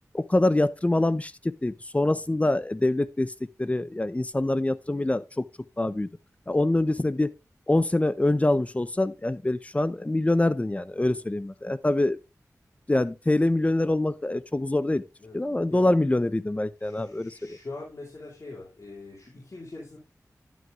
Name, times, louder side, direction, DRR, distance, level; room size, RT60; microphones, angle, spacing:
voice 1, 0.1-3.3 3.6-5.5 5.8-6.1 6.5-7.3 7.7-12.2 12.9-15.0 15.3-17.6, left 2 dB, 20° left, 0.6 m, -25 dB
voice 2, 16.8-20.0, left 2 dB, 55° left, 2.6 m, -43 dB
11.0 x 9.3 x 2.5 m
wide cardioid pair, 70°, 6 cm